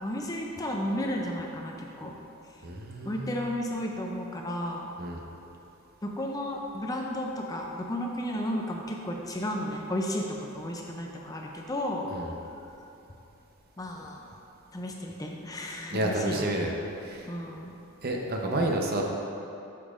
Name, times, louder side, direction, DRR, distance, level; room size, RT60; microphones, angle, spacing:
voice 1, 0.0-2.1 3.0-4.9 6.0-12.1 13.8-14.3 14.7-16.5 17.3-17.7, left 1 dB, 15° left, 0 dB, 0.4 m, -33 dB
voice 2, 2.6-3.5 5.0-5.2 12.1-12.4 15.9-16.7 17.0-17.3 18.0-19.0, right 1 dB, 45° right, 1 dB, 0.7 m, -30 dB
8.3 x 7.1 x 2.5 m, 2.8 s
head